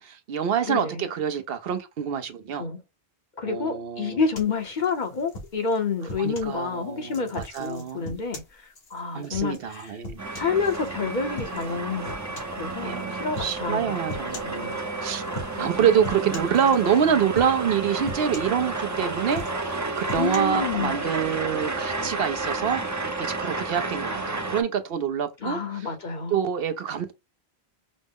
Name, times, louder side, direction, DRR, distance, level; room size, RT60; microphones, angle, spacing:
voice 1, 0.0-2.6 3.4-4.2 6.2-8.2 9.1-10.2 12.8-14.7 15.0-15.3 15.6-25.9 26.3-27.1, right 8 dB, 70° right, 0.8 m, -26 dB
voice 2, 0.7-1.1 2.6-2.8 3.4-10.0 10.4-14.8 15.6-15.7 20.2-21.0 25.4-26.4, left 5 dB, 50° left, 0.9 m, -29 dB
sound 1, 4.3-6.6 7.1-10.9 11.4-11.8 12.1-12.6 13.3-13.6 14.1-14.6 15.3-15.7 16.0-17.0 17.3-17.7 18.0-18.9 19.3-20.4, left 1 dB, 75° left, 1.4 m, -39 dB
sound 2, 10.2-24.6, right 3 dB, 20° right, 0.5 m, -31 dB
5.1 x 2.0 x 3.5 m
omnidirectional pair, 1.1 m